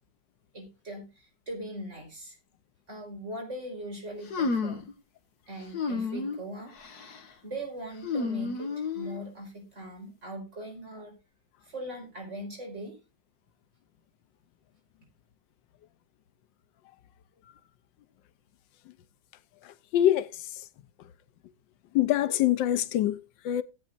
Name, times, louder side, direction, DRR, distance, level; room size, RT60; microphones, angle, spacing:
voice 1, 0.5-2.4 2.9-4.9 5.5-6.7 7.4-11.2 11.6-13.0, right 1 dB, 40° right, 5.2 m, -40 dB
sound 1, 4.3-4.9 5.7-6.4 6.8-7.2 8.0-9.2, left 4 dB, 60° left, 1.9 m, -31 dB
voice 2, 19.6-20.3 21.9-23.6, left 12 dB, 90° left, 1.4 m, -25 dB
18.0 x 8.5 x 2.5 m
omnidirectional pair, 1.9 m